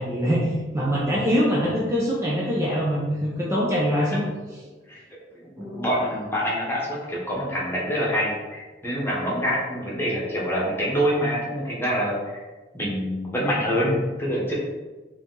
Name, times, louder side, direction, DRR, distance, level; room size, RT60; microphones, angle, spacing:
voice 1, 0.0-4.2 5.6-5.9, equal, 15° right, -5 dB, 0.6 m, -24 dB
voice 2, 5.4-12.4 12.7-14.5, equal, 15° left, -5 dB, 1.1 m, -26 dB
4.9 x 2.9 x 3.8 m, 1.2 s
head